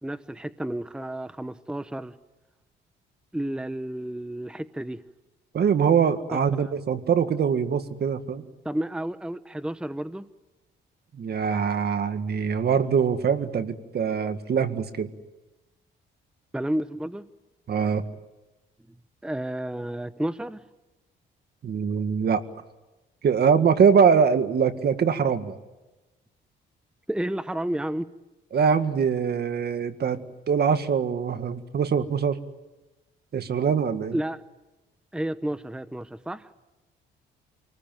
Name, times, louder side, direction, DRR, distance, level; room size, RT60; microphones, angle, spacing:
voice 1, 0.0-2.1 3.3-5.0 6.3-6.7 8.6-10.3 16.5-17.3 19.2-20.6 27.1-28.1 34.1-34.4 35.1-36.5, right 1 dB, 5° right, 13 dB, 0.8 m, -31 dB
voice 2, 5.5-8.4 11.1-15.1 17.7-18.0 21.6-22.4 23.2-25.6 28.5-32.4 33.3-34.2, right 6 dB, 55° right, 10 dB, 1.8 m, -23 dB
27.5 x 19.5 x 9.2 m, 1.1 s
cardioid pair, 90°, 20 cm